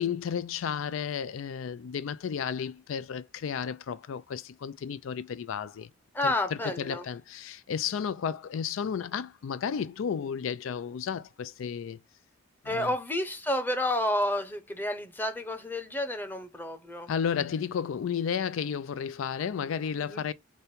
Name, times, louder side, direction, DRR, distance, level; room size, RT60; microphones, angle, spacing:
voice 1, 0.0-5.9 6.2-12.0 12.6-12.9 17.1-20.3, left 7 dB, 90° left, 0.4 m, -33 dB
voice 2, 6.1-7.1 12.6-17.1 20.0-20.2, left 1 dB, 10° left, 0.7 m, -30 dB
5.1 x 2.2 x 4.2 m
head